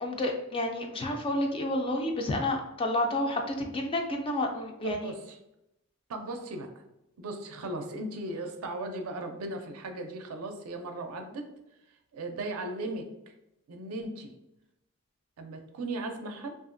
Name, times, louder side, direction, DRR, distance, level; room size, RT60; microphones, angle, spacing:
voice 1, 0.0-5.0, left 1 dB, 25° left, 2 dB, 0.3 m, -30 dB
voice 2, 4.8-5.4 6.1-6.7 7.2-11.5 12.1-13.3 13.7-14.3 15.4-16.5, right 2 dB, 70° right, 5 dB, 0.4 m, -37 dB
2.8 x 2.4 x 2.5 m, 0.86 s
head